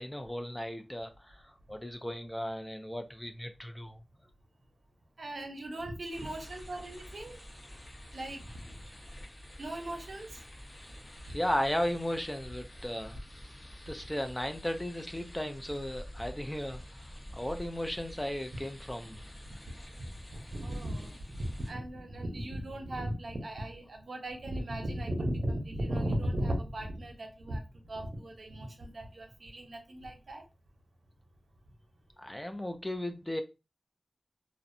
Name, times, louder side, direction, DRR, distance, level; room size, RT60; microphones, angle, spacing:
voice 1, 0.0-4.0 11.3-13.2 13.9-16.8 17.3-19.2 32.2-33.4, left 1 dB, 15° left, 0.4 m, -35 dB
voice 2, 5.2-7.4 8.1-8.4 9.6-10.3 20.3-21.1 21.4-27.6 27.9-30.4, right 1 dB, 70° right, 0.7 m, -36 dB
sound 1, 6.1-21.7, equal, 40° left, 0.7 m, -48 dB
2.6 x 2.0 x 2.6 m
wide cardioid pair, 70°, 0 cm